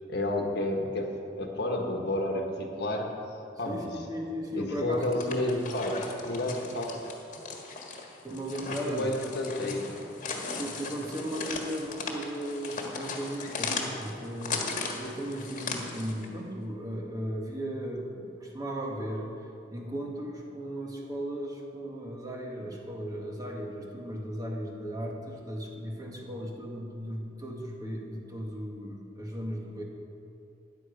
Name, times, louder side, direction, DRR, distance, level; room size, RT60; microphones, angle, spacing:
voice 1, 0.1-3.1 3.6-3.9 4.5-6.0 6.2-7.0 8.8-9.8, left 1 dB, 60° left, 2 dB, 1.4 m, -30 dB
voice 2, 3.6-5.6 8.2-9.6 10.5-19.4 19.7-29.8, equal, 20° right, -1 dB, 1.7 m, -36 dB
sound 1, 4.9-16.3, left 4 dB, 40° left, 1.7 m, -37 dB
13.5 x 10.5 x 5.3 m, 2.7 s
head